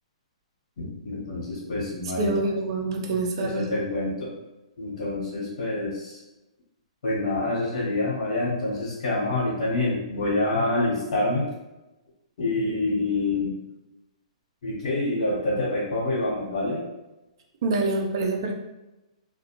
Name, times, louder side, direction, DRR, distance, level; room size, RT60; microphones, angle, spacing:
voice 1, 0.8-2.4 3.4-4.3 4.8-6.2 7.0-11.5 12.4-13.6 14.6-16.8, left 2 dB, 65° left, -6 dB, 1.0 m, -27 dB
voice 2, 2.2-3.8 17.6-18.5, right 2 dB, 45° right, 2 dB, 0.4 m, -26 dB
2.4 x 2.1 x 2.9 m, 1.0 s
hypercardioid pair, 165°, 4 cm